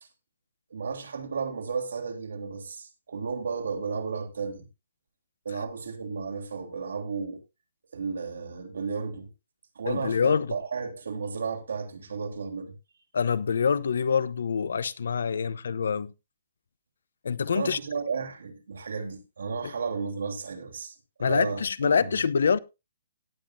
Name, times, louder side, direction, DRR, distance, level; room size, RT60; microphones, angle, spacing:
voice 1, 0.7-4.7 5.4-7.4 7.9-9.3 9.7-12.7 17.5-22.2, right 5 dB, 85° right, 3.2 m, -33 dB
voice 2, 9.8-10.5 13.1-16.1 17.2-17.8 19.6-19.7 21.2-22.6, left 6 dB, 75° left, 0.7 m, -25 dB
17.5 x 8.1 x 2.6 m
hypercardioid pair, 175°, 0 cm